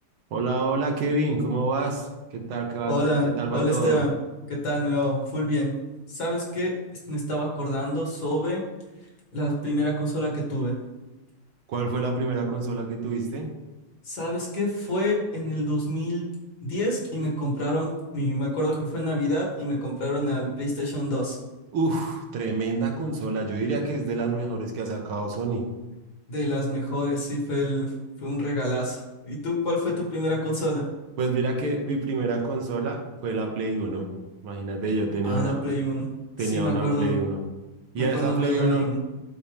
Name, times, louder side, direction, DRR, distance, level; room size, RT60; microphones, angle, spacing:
voice 1, 0.3-2.9 3.2-4.0 11.7-13.5 21.7-25.6 31.2-34.1 34.4-35.7 36.4-37.4 37.9-38.9, right 3 dB, 80° right, 2 dB, 2.0 m, -27 dB
voice 2, 2.9-4.1 4.5-5.7 6.1-6.7 7.1-8.6 9.3-10.7 14.0-16.2 16.6-21.4 26.3-27.9 28.2-30.9 35.2-36.1 36.4-37.2 38.0-39.0, equal, 50° left, -2 dB, 2.3 m, -27 dB
12.0 x 4.3 x 3.5 m, 1.1 s
omnidirectional pair, 2.3 m